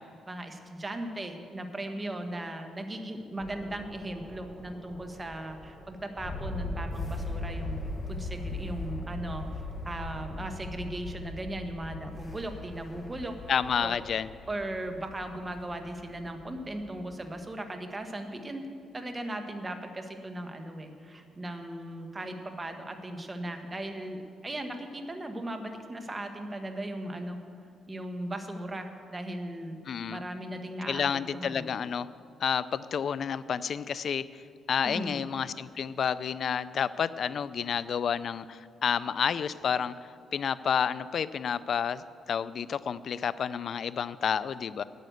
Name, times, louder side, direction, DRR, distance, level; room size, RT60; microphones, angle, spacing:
voice 1, 0.3-7.8 8.1-9.4 9.8-13.3 13.8-14.0 14.5-18.7 18.9-27.4 27.9-29.8 30.1-31.6 34.8-35.2, right 1 dB, 20° right, 6 dB, 1.2 m, -37 dB
sound 1, 3.4-17.3, left 2 dB, 20° left, 1.3 m, -40 dB
voice 2, 13.5-14.3 29.9-30.2 30.9-32.1 32.4-34.2 34.7-44.8, left 7 dB, 55° left, 16 dB, 0.4 m, -30 dB
9.7 x 9.3 x 7.9 m, 2.4 s
cardioid pair, 110°, 0 cm